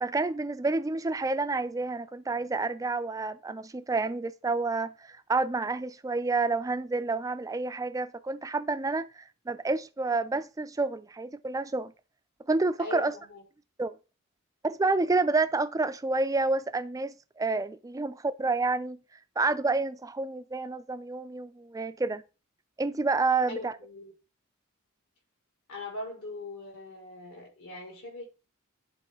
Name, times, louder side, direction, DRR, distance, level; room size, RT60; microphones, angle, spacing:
voice 1, 0.0-11.9 12.5-13.1 13.8-14.0 14.6-19.0 19.4-22.2 22.8-23.7, right 3 dB, 15° right, 0.4 m, -29 dB
voice 2, 12.8-13.4 23.5-24.1 25.7-28.3, left 2 dB, 75° left, 4.5 m, -41 dB
10.5 x 4.2 x 3.6 m
head